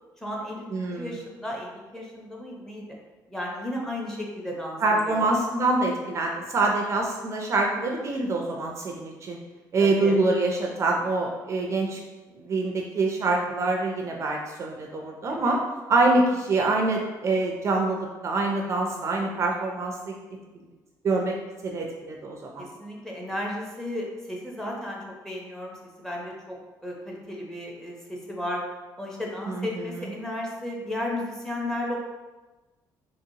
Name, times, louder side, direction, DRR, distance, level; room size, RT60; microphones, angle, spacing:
voice 1, 0.2-2.9 3.3-5.3 9.8-10.2 13.4-13.7 15.3-15.6 19.1-19.3 22.6-28.6 29.0-32.0, left 1 dB, 5° left, -2 dB, 0.6 m, -34 dB
voice 2, 0.7-1.2 4.8-9.4 9.7-12.0 12.3-15.6 15.9-20.1 21.0-21.4 21.6-22.7 29.5-30.0, right 2 dB, 40° right, 1 dB, 0.4 m, -25 dB
2.8 x 2.7 x 2.7 m, 1.2 s
cardioid pair, 115°, 7 cm